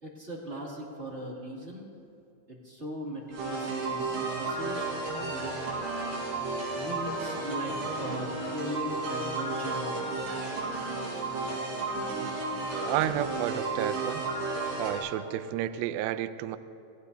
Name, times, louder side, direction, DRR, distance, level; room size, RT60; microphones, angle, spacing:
voice 1, 0.0-1.9 2.5-5.5 6.7-10.2, equal, 20° right, -5 dB, 1.9 m, -39 dB
sound 1, 3.3-15.0, right 3 dB, 70° right, 7.2 m, -33 dB
voice 2, 12.9-14.2 14.8-16.6, right 12 dB, 90° right, 11 dB, 2.1 m, -31 dB
29.0 x 16.5 x 2.7 m, 2.7 s
omnidirectional pair, 4.9 m